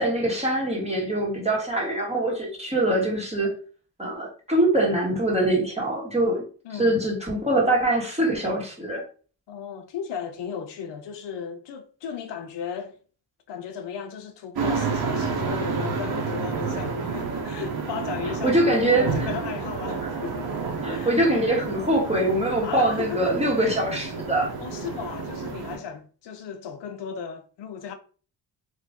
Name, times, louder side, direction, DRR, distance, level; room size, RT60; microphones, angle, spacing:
voice 1, 0.0-3.5 4.0-6.4 6.8-9.0 18.4-19.3 20.8-24.5, right 1 dB, 15° right, 1.6 m, -23 dB
voice 2, 6.6-7.0 9.5-13.0 13.5-20.5 20.9-21.2 22.6-23.8 24.6-27.9, left 7 dB, 80° left, 0.7 m, -35 dB
sound 1, 14.6-25.8, right 5 dB, 60° right, 0.9 m, -30 dB
2.8 x 2.6 x 3.5 m
cardioid pair, 65°, 42 cm